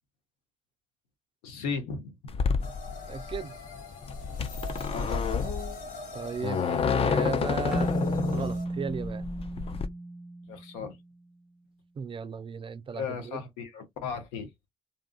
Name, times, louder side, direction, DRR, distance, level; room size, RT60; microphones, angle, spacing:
voice 1, 1.4-2.3 4.9-5.3 10.5-11.0 12.9-14.5, left 5 dB, 80° left, 0.7 m, -36 dB
sound 1, 2.3-9.9, left 6 dB, 35° left, 0.4 m, -29 dB
sound 2, 2.6-8.7, left 2 dB, 55° left, 1.2 m, -44 dB
voice 2, 3.1-3.6 6.1-7.9 8.3-9.2 12.0-13.4, right 6 dB, 30° right, 0.3 m, -36 dB
Keyboard (musical), 7.7-10.9, right 2 dB, 5° right, 0.9 m, -33 dB
2.6 x 2.3 x 2.2 m
hypercardioid pair, 45°, 16 cm